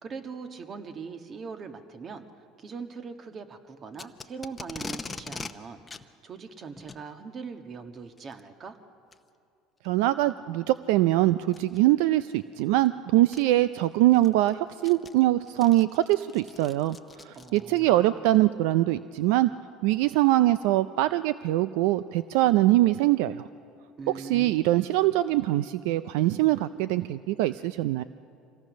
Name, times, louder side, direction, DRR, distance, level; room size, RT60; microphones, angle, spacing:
voice 1, 0.0-2.2 2.6-8.8 17.3-18.3 24.0-24.7, right 5 dB, 40° right, 7 dB, 1.5 m, -41 dB
Packing tape duct tape, 3.9-5.5 5.9-6.0 6.8-7.0 8.2-8.4 9.1-9.2 9.8-9.9 11.5-11.8 12.9-13.0 13.3-13.4 13.9-17.8, left 4 dB, 20° left, 0.8 m, -41 dB
voice 2, 9.8-19.5 19.8-23.5 24.1-28.0, right 16 dB, 80° right, 14 dB, 0.4 m, -23 dB
26.0 x 17.0 x 6.3 m, 2.4 s
supercardioid pair, 95°, 0 cm